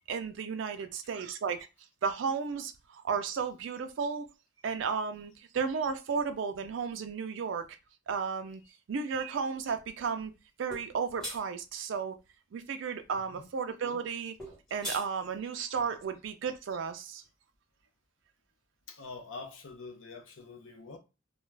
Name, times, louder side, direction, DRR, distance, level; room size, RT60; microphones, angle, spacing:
voice 1, 0.1-1.7 2.0-4.3 4.6-7.7 8.1-8.6 8.9-10.3 10.6-12.2 12.5-14.3 14.7-17.2, right 6 dB, 70° right, 0.4 m, -33 dB
sound 1, 10.7-10.9 11.2-11.4 14.4-15.1, equal, 5° left, 1.0 m, -38 dB
voice 2, 18.9-21.0, left 4 dB, 75° left, 0.6 m, -45 dB
2.3 x 2.2 x 3.1 m
head